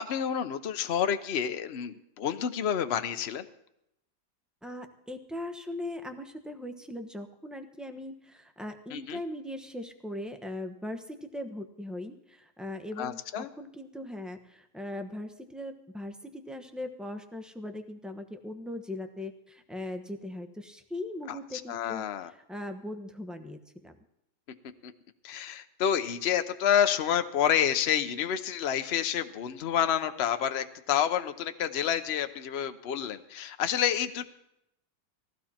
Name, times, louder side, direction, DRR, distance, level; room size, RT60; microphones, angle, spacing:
voice 1, 0.0-3.4 8.9-9.2 13.0-13.5 21.3-21.4 21.7-22.3 24.8-24.9 25.2-34.2, left 9 dB, 50° left, 9 dB, 0.8 m, -29 dB
voice 2, 4.6-23.9, left 1 dB, ahead, 6 dB, 0.7 m, -39 dB
19.5 x 15.0 x 4.4 m, 0.82 s
omnidirectional pair, 2.1 m